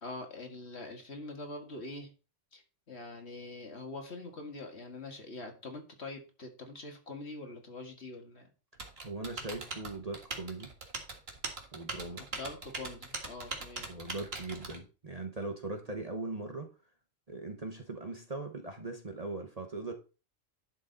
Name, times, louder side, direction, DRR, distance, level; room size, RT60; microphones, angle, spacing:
voice 1, 0.0-2.1 2.5-8.5 12.3-13.9, left 2 dB, 55° left, 3 dB, 2.1 m, -44 dB
Typing, 8.8-14.8, right 3 dB, 50° right, 1.9 m, -41 dB
voice 2, 9.0-10.7 11.7-12.2 13.8-16.7 17.3-19.9, right 2 dB, 30° right, 4 dB, 1.1 m, -40 dB
11.0 x 6.5 x 4.0 m, 0.34 s
omnidirectional pair, 1.4 m